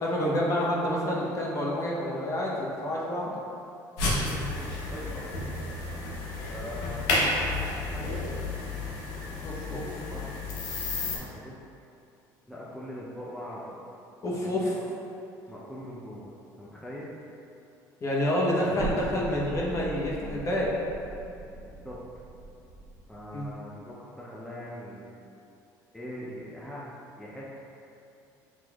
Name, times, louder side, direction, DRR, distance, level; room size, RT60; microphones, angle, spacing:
voice 1, 0.0-3.3 9.4-9.9 14.2-14.7 18.0-20.7 23.3-23.5, left 1 dB, 40° left, -4 dB, 0.9 m, -28 dB
sound 1, 4.0-11.2, left 2 dB, 85° left, 0.8 m, -31 dB
voice 2, 4.1-5.6 6.5-9.2 10.0-10.3 11.0-11.6 12.5-13.8 14.4-14.6 15.5-17.1 21.7-22.0 23.1-25.2 25.9-26.9 27.2-27.5, left 1 dB, 5° left, -7 dB, 0.6 m, -42 dB
Explosion, 18.8-23.6, right 2 dB, 50° right, 1.1 m, -40 dB
6.0 x 3.0 x 2.3 m, 2.7 s
supercardioid pair, 100°, 8 cm